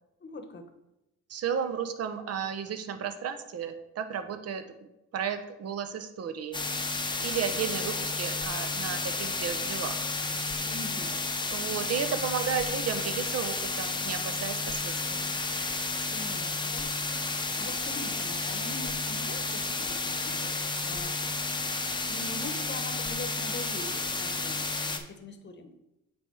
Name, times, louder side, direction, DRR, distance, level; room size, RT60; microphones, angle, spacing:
voice 1, 0.2-0.7 10.6-11.1 16.1-16.9 17.5-21.5 22.0-25.7, left 2 dB, 35° left, 7 dB, 1.0 m, -43 dB
voice 2, 1.3-4.6 5.1-6.6 7.2-10.0 11.5-15.3, right 7 dB, 55° right, 8 dB, 0.8 m, -33 dB
sound 1, 6.5-25.0, left 3 dB, 15° left, 0.7 m, -32 dB
8.4 x 3.5 x 4.6 m, 0.91 s
cardioid pair, 90°, 30 cm